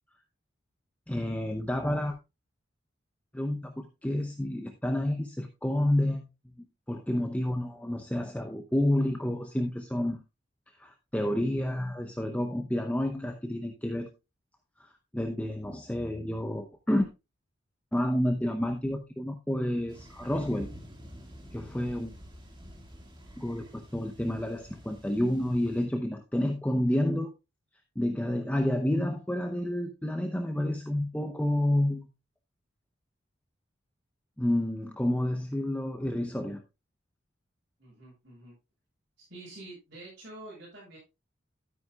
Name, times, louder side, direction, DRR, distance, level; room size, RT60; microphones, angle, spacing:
voice 1, 1.1-2.2 3.3-6.3 6.9-10.2 10.8-14.1 14.8-17.1 17.9-20.7 21.5-22.1 23.4-27.3 28.0-32.1 34.4-36.6, left 1 dB, 5° left, 5 dB, 0.7 m, -29 dB
sound 1, 19.9-25.9, equal, 25° right, 2.0 m, -49 dB
voice 2, 37.8-38.5 39.2-41.0, right 2 dB, 50° right, -7 dB, 6.6 m, -47 dB
12.5 x 9.3 x 2.3 m, 0.25 s
head